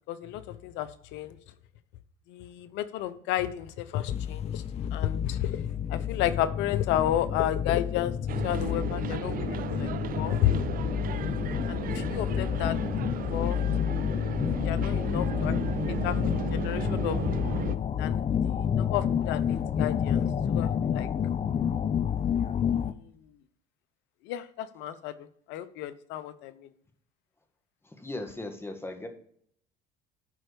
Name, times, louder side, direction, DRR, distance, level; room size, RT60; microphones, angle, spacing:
voice 1, 0.1-1.4 2.3-4.6 4.9-8.1 8.4-9.9 10.2-10.7 11.7-12.8 13.3-13.6 14.6-15.5 15.9-16.2 16.5-17.2 18.0-21.1 22.8-23.1 24.2-25.1 25.5-26.5, left 12 dB, 70° left, 14 dB, 0.8 m, -32 dB
sound 1, 4.1-22.9, left 8 dB, 35° left, 0.6 m, -29 dB
sound 2, 8.3-17.8, right 9 dB, 50° right, 0.6 m, -36 dB
voice 2, 27.9-29.1, left 2 dB, 10° left, 5 dB, 1.8 m, -38 dB
11.0 x 4.4 x 5.2 m, 0.64 s
supercardioid pair, 75°, 19 cm